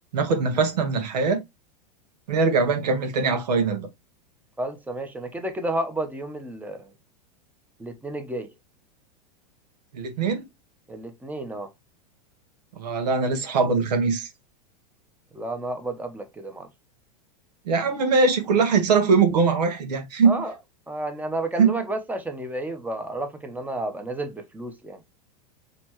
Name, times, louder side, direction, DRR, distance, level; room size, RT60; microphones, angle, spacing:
voice 1, 0.1-1.4 2.3-3.9 9.9-10.4 12.7-14.3 17.6-20.4 21.6-21.7, right 4 dB, 75° right, 1.3 m, -22 dB
voice 2, 4.6-6.9 7.8-8.5 10.9-11.7 15.3-16.7 20.2-20.5 20.9-25.0, right 1 dB, 10° right, 0.9 m, -31 dB
4.2 x 3.1 x 3.0 m
hypercardioid pair, 100°, 21 cm